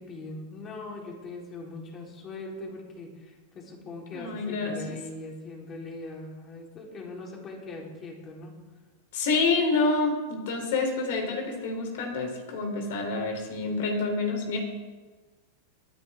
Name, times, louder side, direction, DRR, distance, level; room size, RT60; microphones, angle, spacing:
voice 1, 0.0-8.5, left 2 dB, 30° left, -1 dB, 4.1 m, -41 dB
voice 2, 4.1-5.0 9.1-14.6, left 3 dB, 70° left, 3 dB, 3.6 m, -28 dB
24.0 x 9.9 x 3.8 m, 1.3 s
hypercardioid pair, 120°, 0 cm